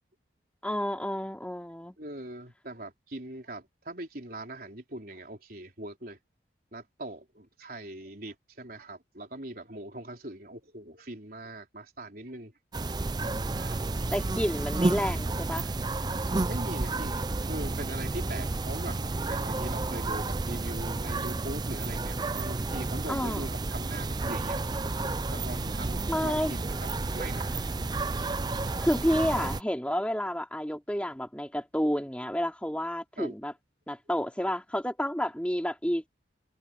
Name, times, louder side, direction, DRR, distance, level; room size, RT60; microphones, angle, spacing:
voice 1, 0.6-2.0 14.1-15.7 23.1-23.5 26.1-26.5 28.8-33.5 33.9-36.1, equal, 5° left, 3.6 m, -30 dB
voice 2, 2.0-6.2 6.7-12.5 13.5-13.8 16.5-24.6 25.3-26.9 27.1-27.6 33.2-33.3, right 1 dB, 50° right, 4.1 m, -41 dB
sound 1, 12.7-29.6, right 2 dB, 20° right, 0.5 m, -31 dB
head